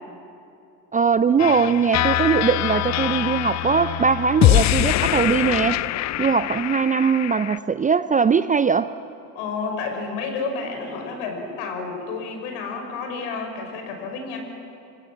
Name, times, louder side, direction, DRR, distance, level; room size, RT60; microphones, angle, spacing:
voice 1, 0.9-5.8 6.2-8.9, right 6 dB, 15° right, 13 dB, 0.5 m, -20 dB
sound 1, 1.4-7.6, left 14 dB, 35° left, 0.6 m, -23 dB
voice 2, 9.4-14.4, left 4 dB, 65° left, 4 dB, 5.7 m, -30 dB
26.5 x 24.5 x 7.5 m, 2.7 s
hypercardioid pair, 70°, 49 cm